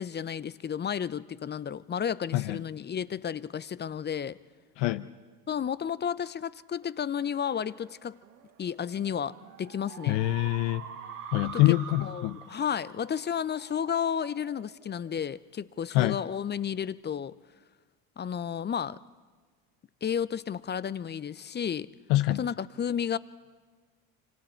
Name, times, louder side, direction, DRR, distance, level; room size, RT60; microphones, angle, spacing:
voice 1, 0.0-4.4 5.5-8.2 8.6-10.2 11.4-11.6 12.0-17.3 18.2-19.0 20.0-21.9 22.4-23.2, left 8 dB, 25° left, 18 dB, 0.5 m, -32 dB
voice 2, 4.8-5.1 10.1-10.8 11.3-12.4 15.9-16.2 22.1-22.4, left 17 dB, 65° left, 12 dB, 0.7 m, -25 dB
sound 1, 6.8-15.7, right 7 dB, 85° right, 1.9 m, -46 dB
26.5 x 26.5 x 4.5 m, 1.4 s
hypercardioid pair, 70°, 44 cm